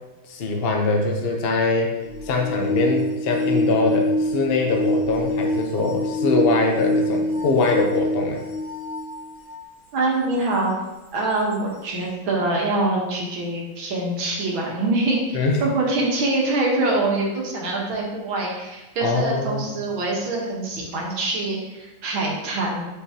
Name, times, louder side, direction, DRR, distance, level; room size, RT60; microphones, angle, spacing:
voice 1, 0.3-2.0 2.2-8.4 15.3-15.6 19.0-19.8, left 3 dB, 50° left, 1 dB, 0.7 m, -22 dB
sound 1, 2.0-9.7 10.4-10.5 11.5-11.6, left 1 dB, 30° left, 2.8 m, -25 dB
voice 2, 9.9-10.7 11.1-22.9, right 2 dB, 70° right, -2 dB, 2.1 m, -24 dB
8.3 x 5.2 x 2.9 m, 1.0 s
omnidirectional pair, 2.3 m